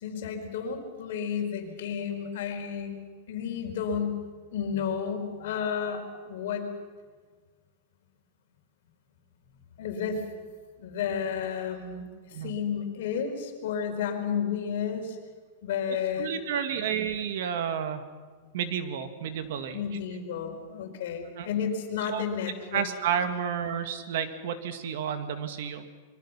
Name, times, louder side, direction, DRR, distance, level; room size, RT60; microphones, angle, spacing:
voice 1, 0.0-3.0 3.3-4.2 4.5-6.7 9.5-10.3 10.8-12.1 12.4-15.2 15.6-16.3 19.7-22.8, left 7 dB, 65° left, 3 dB, 4.6 m, -32 dB
voice 2, 16.2-18.1 18.5-19.8 21.4-21.5 22.0-22.2 22.7-25.8, right 8 dB, 65° right, 8 dB, 2.1 m, -31 dB
26.0 x 23.0 x 5.9 m, 1.5 s
supercardioid pair, 160°, 0 cm